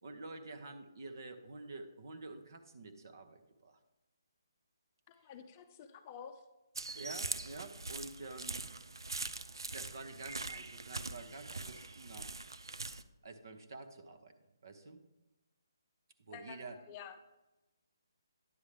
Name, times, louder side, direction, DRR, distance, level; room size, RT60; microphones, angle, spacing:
voice 1, 0.0-3.8 6.9-8.7 9.7-12.3 13.2-14.3 14.6-15.0 16.3-16.8, right 3 dB, 60° right, 7 dB, 0.9 m, -48 dB
voice 2, 5.1-6.4 16.3-17.2, left 8 dB, 25° left, 7 dB, 0.5 m, -50 dB
sound 1, 6.8-13.0, right 3 dB, 85° right, 0.4 m, -42 dB
9.9 x 7.1 x 3.3 m, 1.0 s
hypercardioid pair, 150°, 2 cm